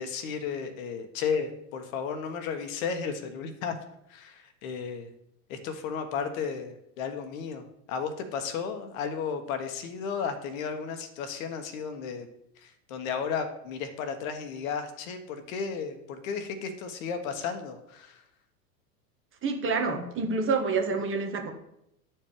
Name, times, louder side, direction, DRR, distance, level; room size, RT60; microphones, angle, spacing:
voice 1, 0.0-3.8 4.1-5.1 5.5-12.3 12.6-18.2, left 6 dB, 60° left, 7 dB, 1.3 m, -34 dB
voice 2, 19.4-21.5, right 4 dB, 25° right, 3 dB, 1.3 m, -28 dB
9.7 x 4.6 x 4.8 m, 0.79 s
hypercardioid pair, 95°, 46 cm